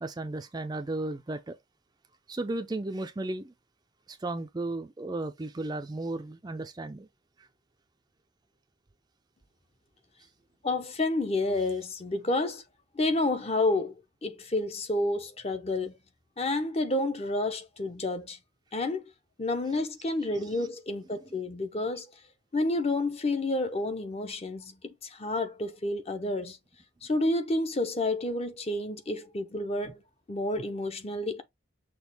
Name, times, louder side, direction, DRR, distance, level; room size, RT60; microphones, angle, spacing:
voice 1, 0.0-1.6 2.3-3.5 4.1-7.1 20.4-20.7, right 2 dB, 20° right, 0.4 m, -34 dB
voice 2, 10.6-12.6 12.9-13.9 14.2-16.0 16.4-18.4 18.7-19.0 19.4-22.1 22.5-26.6 27.0-30.0 30.3-31.4, left 2 dB, 30° left, 0.6 m, -30 dB
6.2 x 2.4 x 3.4 m
head